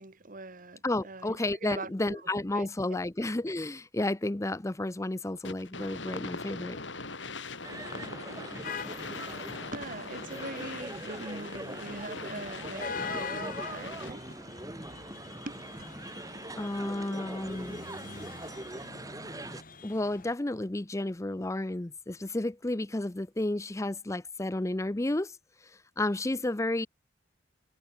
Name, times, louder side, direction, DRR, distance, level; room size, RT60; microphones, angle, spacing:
voice 1, 0.0-2.2 2.5-3.0 9.7-14.3 15.5-15.6, right 2 dB, 45° right, 2.0 m, -42 dB
voice 2, 0.8-6.8 16.5-17.9 19.8-26.9, left 2 dB, 15° left, 0.6 m, -32 dB
sound 1, 5.4-14.3, left 3 dB, 80° left, 6.6 m, -41 dB
sound 2, 7.6-19.6, right 1 dB, 20° right, 3.6 m, -42 dB
sound 3, 8.6-20.4, left 5 dB, 50° left, 6.5 m, -44 dB
head